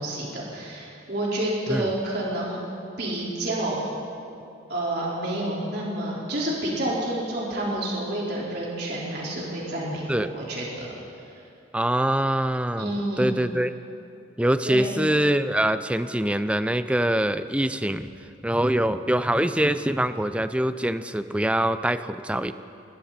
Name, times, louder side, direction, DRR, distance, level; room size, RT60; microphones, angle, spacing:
voice 1, 0.0-2.6 3.0-3.8 4.7-10.9 11.1-11.4 12.8-13.4 14.7-14.9, right 1 dB, 55° right, -5 dB, 4.8 m, -29 dB
voice 2, 11.7-13.7 14.4-18.1 18.4-22.5, right 1 dB, 5° right, 11 dB, 0.5 m, -24 dB
29.0 x 21.0 x 4.4 m, 2.6 s
head